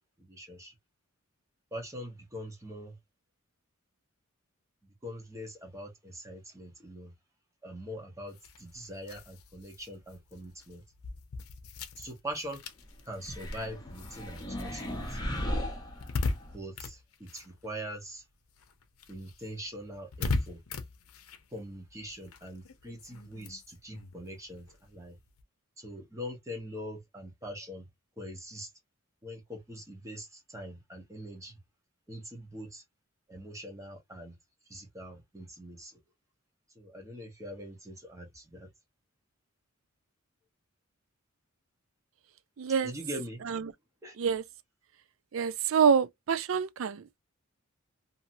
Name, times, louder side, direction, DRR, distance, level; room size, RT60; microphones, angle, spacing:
voice 1, 0.2-0.7 1.7-2.9 4.8-7.1 7.6-10.8 12.0-12.6 13.1-15.3 16.5-18.2 19.1-20.6 21.5-25.1 25.8-27.8 28.2-28.7 29.2-31.6 32.1-32.8 33.3-34.4 34.7-36.0 36.8-38.7 42.8-43.4 44.0-44.1, equal, 15° right, 0.9 m, -43 dB
sound 1, 8.3-18.2 18.5-25.4, left 3 dB, 85° left, 0.6 m, -40 dB
sound 2, 13.2-16.5, equal, 20° left, 0.8 m, -36 dB
voice 2, 42.6-42.9 43.5-43.7 44.2-44.4 45.3-47.2, right 6 dB, 65° right, 0.4 m, -27 dB
2.8 x 2.7 x 2.6 m
head